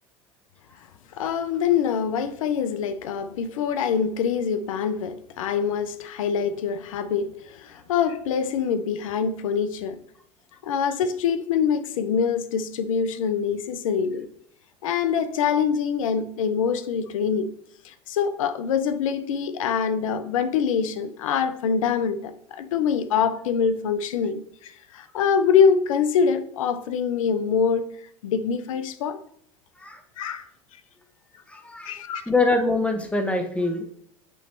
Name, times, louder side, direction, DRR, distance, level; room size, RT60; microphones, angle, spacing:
voice 1, 1.1-10.0 10.6-14.3 14.8-17.5 17.8-27.9 28.2-29.2 30.2-30.5 31.8-32.2, left 7 dB, 90° left, 0.5 m, -24 dB
voice 2, 31.5-33.8, left 2 dB, 5° left, 1.0 m, -24 dB
8.9 x 3.1 x 4.3 m
hypercardioid pair, 95°, 17 cm